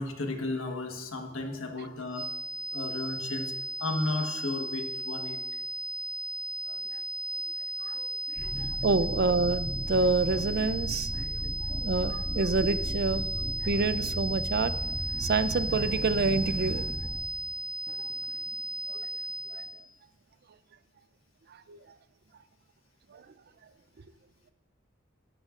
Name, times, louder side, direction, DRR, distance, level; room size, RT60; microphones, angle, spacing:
voice 1, 0.0-2.3 2.7-5.4 8.4-8.8 11.2-11.8, left 2 dB, 75° left, 3 dB, 1.4 m, -34 dB
sound 1, 2.1-19.9, right 1 dB, 5° right, 0.7 m, -35 dB
sound 2, 8.4-17.1, equal, 35° right, 1.7 m, -36 dB
voice 2, 8.8-11.3 11.7-13.2 13.6-14.8 15.1-17.2 18.9-19.0 19.5-19.6 21.7-21.8 23.1-23.2, right 3 dB, 50° right, 13 dB, 0.5 m, -28 dB
18.0 x 11.5 x 2.5 m, 0.99 s
head